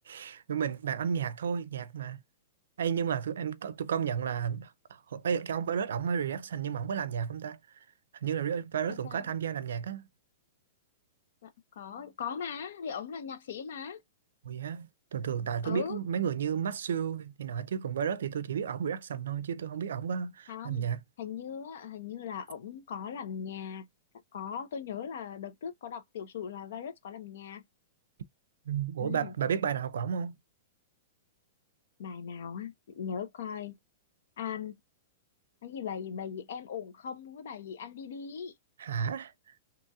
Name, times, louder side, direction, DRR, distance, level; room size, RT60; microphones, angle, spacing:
voice 1, 0.1-2.2 2.8-7.6 8.2-10.1 14.4-21.0 28.7-30.4 38.8-39.3, right 7 dB, 85° right, 0.4 m, -32 dB
voice 2, 8.9-9.3 11.4-11.5 11.8-14.0 15.6-16.0 20.5-20.9 21.2-23.9 24.3-27.6 29.0-29.3 32.0-33.8 34.4-34.8 35.6-38.5, left 7 dB, 70° left, 0.6 m, -39 dB
2.9 x 2.7 x 2.2 m
hypercardioid pair, 155°, 0 cm